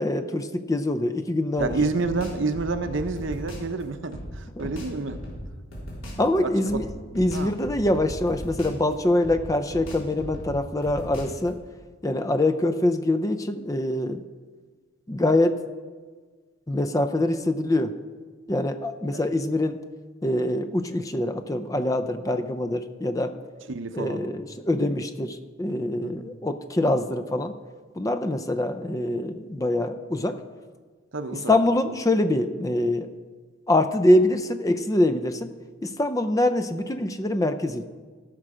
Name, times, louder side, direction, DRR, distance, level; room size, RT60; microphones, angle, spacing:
voice 1, 0.0-1.7 4.6-4.7 6.2-6.9 7.1-11.6 12.0-14.2 15.1-15.6 16.7-17.9 18.5-19.8 20.2-23.4 23.9-27.5 27.9-30.4 31.3-33.1 33.7-35.5 35.8-37.9, left 1 dB, 15° left, 10 dB, 0.4 m, -24 dB
sound 1, 1.6-3.7 4.1-6.3 6.7-8.9 9.2-11.5, equal, 70° left, 3.7 m, -38 dB
voice 2, 1.6-5.2 6.4-6.8 7.3-7.5 19.1-19.2 23.7-24.2 26.0-26.3 31.1-31.5, right 3 dB, 60° right, 9 dB, 0.7 m, -29 dB
16.5 x 6.2 x 4.9 m, 1.5 s
head